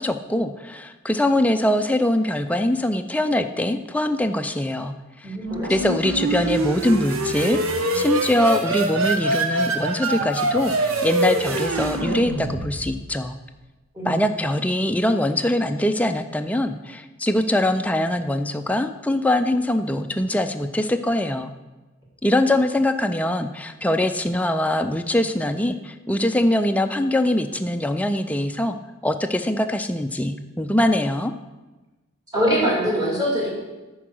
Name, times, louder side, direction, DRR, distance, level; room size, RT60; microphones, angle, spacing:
voice 1, 0.0-5.4 5.7-13.4 14.0-21.5 22.2-28.8 29.0-31.3, left 1 dB, 5° left, 7 dB, 0.4 m, -23 dB
voice 2, 5.2-5.7 13.9-14.4 32.3-33.5, equal, 20° right, -5 dB, 3.0 m, -23 dB
sound 1, 5.4-13.1, right 2 dB, 75° right, 1.0 m, -24 dB
9.8 x 4.6 x 6.3 m, 1.1 s
head